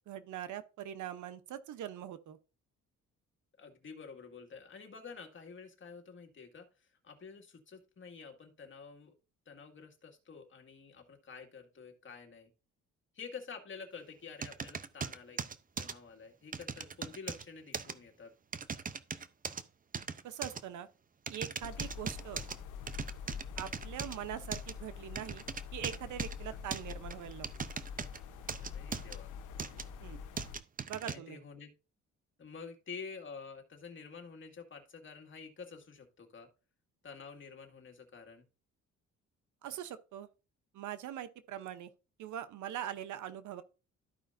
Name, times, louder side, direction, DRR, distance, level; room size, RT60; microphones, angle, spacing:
voice 1, 0.1-2.4 20.2-20.9 21.3-22.4 23.6-25.4 25.7-27.7 30.0-30.2 30.9-31.4 39.6-40.3 40.7-41.9 42.2-43.6, right 10 dB, 75° right, 0.9 m, -42 dB
voice 2, 3.6-9.1 9.5-12.5 13.1-15.4 15.8-18.3 28.6-29.3 31.0-31.7 32.4-36.5 37.0-38.5, left 5 dB, 40° left, 2.1 m, -49 dB
sound 1, 14.4-16.0 16.5-17.4 17.7-17.9 18.5-19.6 19.9-20.6 21.3-22.6 22.9-24.2 24.5-24.7 25.2-26.4 26.7-28.2 28.5-29.2 29.6-29.8 30.4-31.2, right 6 dB, 30° right, 0.6 m, -39 dB
sound 2, 21.6-30.6, left 7 dB, 85° left, 0.9 m, -45 dB
13.5 x 5.1 x 2.6 m
cardioid pair, 90°, 30 cm